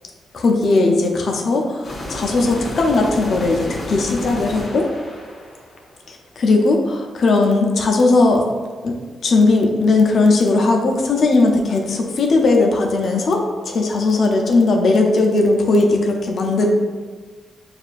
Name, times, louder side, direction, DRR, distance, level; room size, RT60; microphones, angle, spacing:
voice 1, 0.3-4.9 6.1-8.5 8.8-8.9 9.2-16.7, left 3 dB, 55° left, 1 dB, 0.5 m, -17 dB
sound 1, 1.8-5.9, left 1 dB, 30° left, 0.9 m, -31 dB
6.4 x 2.4 x 2.4 m, 1.4 s
wide cardioid pair, 135°, 0 cm